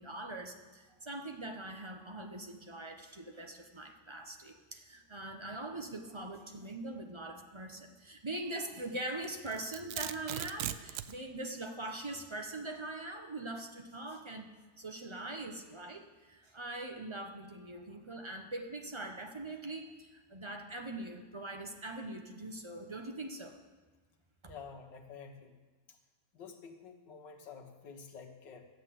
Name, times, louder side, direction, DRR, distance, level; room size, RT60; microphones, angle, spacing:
voice 1, 0.0-23.5 24.4-24.5, right 2 dB, 25° right, 3 dB, 0.7 m, -42 dB
Domestic sounds home sounds, 9.2-11.2, right 12 dB, 75° right, 1.0 m, -39 dB
voice 2, 24.5-25.6 25.9-26.0 26.3-28.7, left 5 dB, 80° left, 3 dB, 1.9 m, -50 dB
13.0 x 8.4 x 7.6 m, 1.3 s
omnidirectional pair, 1.9 m